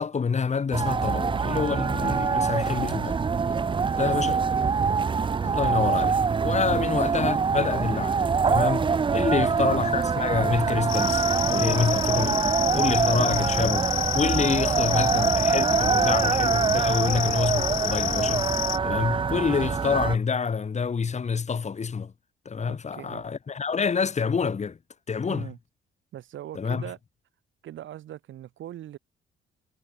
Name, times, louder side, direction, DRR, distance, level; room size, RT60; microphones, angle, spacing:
voice 1, 0.0-3.2 4.0-4.4 5.4-6.2 6.4-12.5 12.7-13.9 14.1-18.5 18.8-22.1 22.5-24.8 25.1-25.5 26.6-26.8, left 5 dB, 35° left, 1.6 m, -27 dB
sound 1, 0.7-20.2, right 5 dB, 25° right, 0.5 m, -24 dB
voice 2, 3.7-4.5 6.7-6.9 9.3-9.5 22.7-23.2 25.3-25.6 26.1-27.0 27.6-29.0, right 12 dB, 75° right, 3.7 m, -41 dB
sound 2, 10.9-18.8, left 17 dB, 80° left, 0.5 m, -30 dB
cardioid pair, 90°, 20 cm